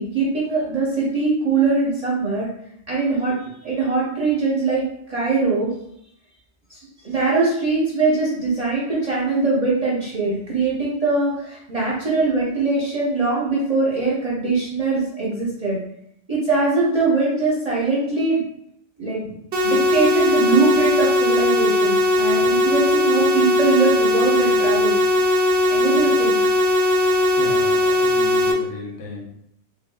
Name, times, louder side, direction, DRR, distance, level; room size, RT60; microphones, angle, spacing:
voice 1, 0.0-2.5 2.9-5.7 6.7-15.8 16.3-18.4 19.0-19.3 19.6-25.0 25.7-26.4, right 3 dB, 40° right, -7 dB, 0.7 m, -22 dB
sound 1, 19.5-28.5, left 1 dB, 70° right, 0.8 m, -18 dB
voice 2, 27.4-29.3, left 2 dB, 75° left, -2 dB, 1.0 m, -35 dB
3.4 x 3.4 x 2.2 m, 0.74 s
omnidirectional pair, 1.2 m